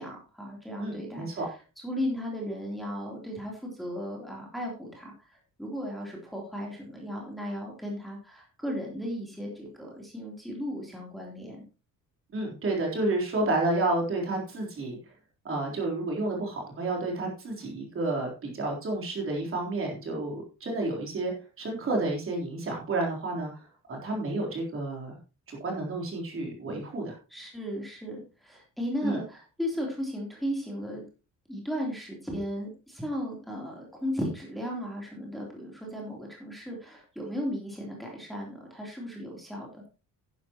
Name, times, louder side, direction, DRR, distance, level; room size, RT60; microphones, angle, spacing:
voice 1, 0.0-11.6 27.3-31.0 31.5-39.8, equal, ahead, -2 dB, 3.3 m, -35 dB
voice 2, 0.8-1.5 12.3-15.0 15.4-21.3 21.6-23.6 23.9-25.2 25.5-27.2 29.0-29.2, right 2 dB, 40° right, 0 dB, 3.7 m, -30 dB
11.0 x 11.0 x 3.0 m, 0.32 s
cardioid pair, 160°, 33 cm